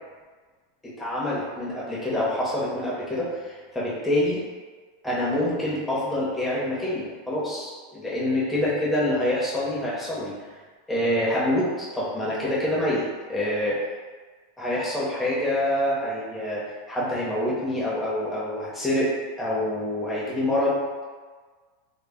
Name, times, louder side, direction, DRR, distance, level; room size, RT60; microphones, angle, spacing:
voice 1, 1.0-4.4 5.0-10.3 10.9-13.0 13.3-13.8 14.6-19.1 19.4-21.0, left 1 dB, 5° left, -8 dB, 0.8 m, -26 dB
2.2 x 2.1 x 3.6 m, 1.5 s
supercardioid pair, 145°, 0 cm